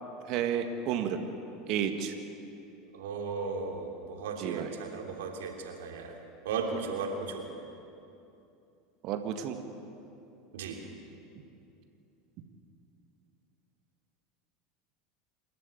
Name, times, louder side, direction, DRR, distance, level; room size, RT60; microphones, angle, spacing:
voice 1, 0.3-1.2 1.7-2.1 4.4-4.7 9.0-9.6, right 8 dB, 55° right, 6 dB, 1.8 m, -31 dB
voice 2, 2.9-6.2 6.4-7.4 10.5-10.8, right 5 dB, 75° right, 2 dB, 3.1 m, -36 dB
27.0 x 12.5 x 9.2 m, 2.7 s
hypercardioid pair, 80°, 0 cm